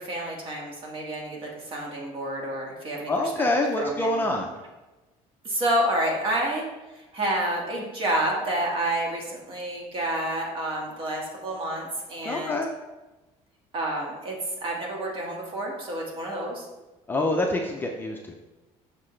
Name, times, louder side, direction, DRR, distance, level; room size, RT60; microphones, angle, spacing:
voice 1, 0.0-3.5 3.7-4.3 5.4-6.6 7.0-12.6 13.7-14.4 14.6-16.6, right 1 dB, 40° right, -1 dB, 1.6 m, -29 dB
voice 2, 3.1-4.5 12.3-12.7 17.1-18.3, left 2 dB, 15° left, 1 dB, 0.5 m, -26 dB
6.4 x 5.9 x 3.2 m, 1.1 s
cardioid pair, 145°, 13 cm